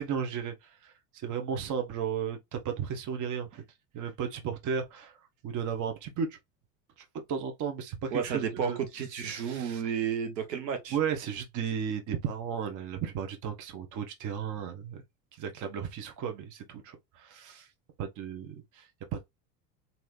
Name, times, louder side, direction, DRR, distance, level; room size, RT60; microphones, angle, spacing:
voice 1, 0.0-3.6 3.9-5.2 5.4-6.4 7.1-8.8 9.2-9.8 10.9-15.0 15.4-17.7 18.0-19.3, right 7 dB, 40° right, 1.1 m, -34 dB
voice 2, 8.1-11.0, right 7 dB, 85° right, 1.2 m, -32 dB
3.3 x 2.8 x 2.5 m
hypercardioid pair, 90°, 48 cm